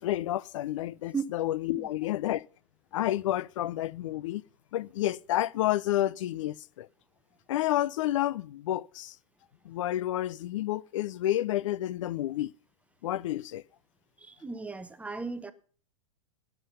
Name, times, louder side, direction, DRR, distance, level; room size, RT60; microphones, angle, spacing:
voice 1, 0.0-2.4 2.9-4.4 4.7-6.9 7.5-9.2 9.6-12.5 13.0-13.6, left 14 dB, 65° left, 0.4 m, -30 dB
voice 2, 14.2-15.5, right 5 dB, 10° right, 0.8 m, -35 dB
17.5 x 5.9 x 5.6 m
hypercardioid pair, 115°, 18 cm